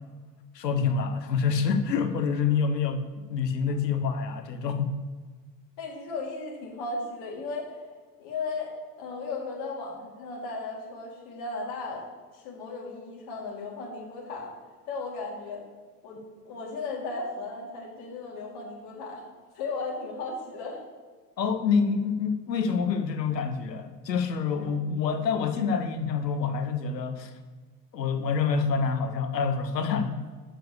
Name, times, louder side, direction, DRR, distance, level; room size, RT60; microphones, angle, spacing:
voice 1, 0.5-5.0 21.4-27.3 27.9-30.3, left 5 dB, 80° left, 7 dB, 1.1 m, -27 dB
voice 2, 5.8-7.7 8.2-8.7 9.0-12.1 12.3-14.5 14.9-15.6 16.0-19.2 19.5-20.8 24.5-24.7 25.6-25.7, left 3 dB, 55° left, -3 dB, 3.1 m, -36 dB
7.1 x 5.7 x 6.8 m, 1.5 s
figure-of-eight pair, 75°, 49 cm